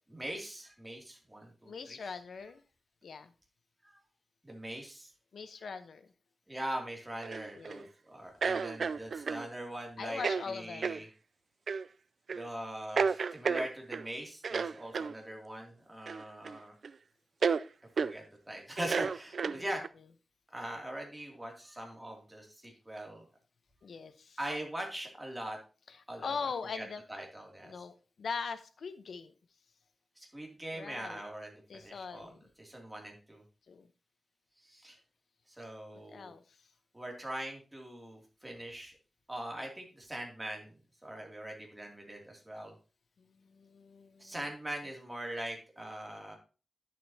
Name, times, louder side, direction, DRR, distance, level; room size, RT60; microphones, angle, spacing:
voice 1, 0.1-2.0 3.8-4.0 4.4-5.1 6.5-11.1 12.3-16.7 18.0-19.8 20.5-23.2 24.4-25.6 26.1-26.4 26.7-27.7 30.2-33.4 34.6-35.0 35.5-36.3 36.9-38.9 39.3-42.7 44.2-46.4, right 1 dB, 10° right, 0 dB, 2.6 m, -42 dB
voice 2, 1.7-2.6 3.0-3.3 5.3-6.1 7.5-7.9 10.0-11.0 19.5-19.6 23.8-24.4 25.9-27.0 27.6-29.3 30.7-31.2 31.7-32.4 33.7-33.9 36.1-36.6 43.2-44.3, left 5 dB, 80° left, 10 dB, 0.9 m, -41 dB
sound 1, 7.2-7.8 8.4-9.5 10.2-10.4 10.8-11.0 11.7-11.9 12.3-12.5 13.0-14.1 14.4-15.1 16.1-16.6 16.8-16.9 17.4-17.6 18.0-18.1 18.8-19.9, right 5 dB, 65° right, 0.3 m, -32 dB
10.5 x 7.5 x 2.8 m, 0.34 s
wide cardioid pair, 120°, 0 cm